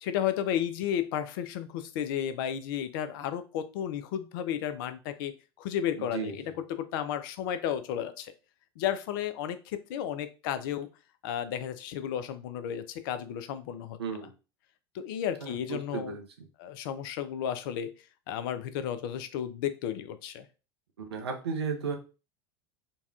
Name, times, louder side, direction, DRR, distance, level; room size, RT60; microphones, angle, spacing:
voice 1, 0.0-6.4 6.8-8.3 8.8-10.9 11.2-14.0 14.9-16.1 16.6-17.9 18.3-20.5, left 10 dB, 55° left, 11 dB, 0.4 m, -33 dB
voice 2, 6.0-6.5 14.0-14.3 15.4-16.5 21.0-22.0, right 5 dB, 75° right, 4 dB, 0.7 m, -35 dB
3.9 x 2.2 x 2.4 m, 0.32 s
figure-of-eight pair, 80°, 14 cm